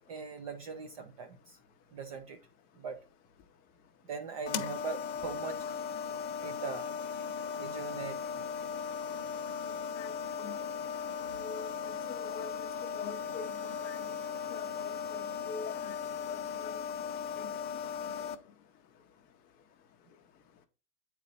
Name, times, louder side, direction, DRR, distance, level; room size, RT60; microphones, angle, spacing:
voice 1, 0.1-1.6 1.9-2.4 2.8-3.0 4.1-5.8 6.4-6.9 7.6-8.5, right 5 dB, 25° right, 0.4 m, -41 dB
sound 1, 4.5-18.4, left 7 dB, 45° left, 0.9 m, -37 dB
voice 2, 10.0-10.6 11.3-11.7 12.1-12.7 13.0-14.1 14.5-16.0 16.3-16.7 17.4-17.5 18.2-18.3, left 5 dB, 20° left, 0.6 m, -45 dB
8.4 x 4.3 x 3.8 m
hypercardioid pair, 135°, 48 cm